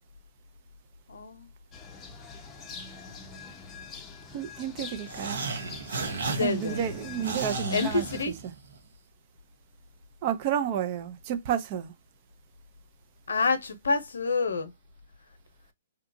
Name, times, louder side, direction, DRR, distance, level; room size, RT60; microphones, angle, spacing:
voice 1, 1.1-1.5 6.3-6.9 7.7-8.3 13.3-14.7, left 4 dB, 80° left, 0.7 m, -28 dB
sound 1, 1.7-8.2, left 5 dB, 20° left, 0.6 m, -44 dB
voice 2, 4.3-5.4 6.3-8.0 8.4-8.5 10.2-11.9, right 9 dB, 40° right, 0.6 m, -31 dB
sound 2, 5.0-8.8, right 3 dB, 70° right, 0.9 m, -34 dB
2.7 x 2.3 x 2.6 m
hypercardioid pair, 135°, 0 cm